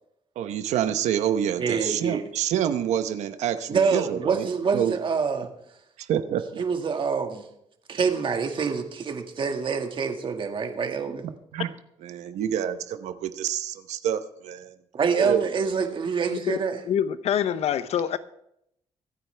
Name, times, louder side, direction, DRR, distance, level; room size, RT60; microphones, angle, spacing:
voice 1, 0.4-4.5 4.7-4.9 6.0-6.6 11.5-11.7 12.0-14.7 15.2-15.5, right 10 dB, 90° right, 0.9 m, -27 dB
voice 2, 1.6-2.2 3.7-5.5 6.3-7.5 7.9-11.3 14.9-16.8, right 5 dB, 45° right, 1.9 m, -26 dB
voice 3, 16.4-18.2, left 9 dB, 70° left, 0.8 m, -26 dB
24.5 x 9.4 x 3.4 m
cardioid pair, 110°, 11 cm